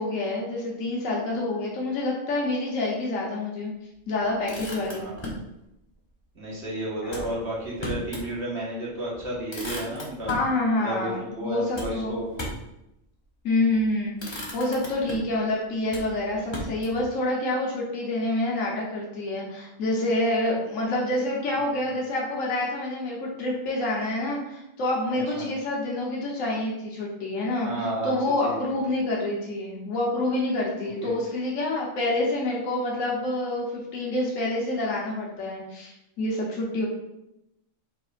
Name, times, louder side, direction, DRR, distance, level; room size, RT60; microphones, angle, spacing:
voice 1, 0.0-3.7 4.1-5.1 7.0-7.3 10.3-12.2 13.4-33.7 33.9-36.9, left 2 dB, 75° left, -3 dB, 1.3 m, -27 dB
Motor vehicle (road), 4.2-5.5 7.1-8.3 8.7-8.8 9.1-10.5 11.7-12.7 13.6-13.8 14.2-15.4 15.9-17.1, left 1 dB, 25° left, 0.7 m, -36 dB
voice 2, 6.4-10.3 10.8-12.4 25.1-25.5 27.6-28.7 31.0-31.1, right 1 dB, 55° right, -6 dB, 1.7 m, -32 dB
5.2 x 4.1 x 2.5 m, 0.86 s
omnidirectional pair, 1.4 m